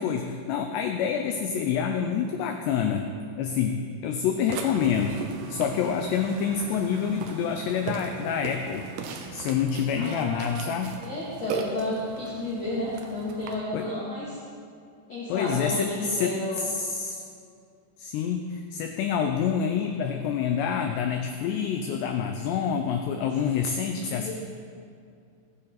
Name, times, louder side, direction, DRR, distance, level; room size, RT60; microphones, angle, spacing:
voice 1, 0.0-8.9 9.3-11.0 13.7-13.9 15.3-17.2 18.0-24.3, left 7 dB, 85° left, 5 dB, 2.5 m, -27 dB
Burping eructation, 4.5-13.6, right 5 dB, 75° right, 2.6 m, -38 dB
voice 2, 9.9-14.4 15.1-16.6 23.2-23.3 23.8-24.3, left 1 dB, 40° left, -9 dB, 2.9 m, -32 dB
19.5 x 9.6 x 4.0 m, 2.3 s
omnidirectional pair, 5.7 m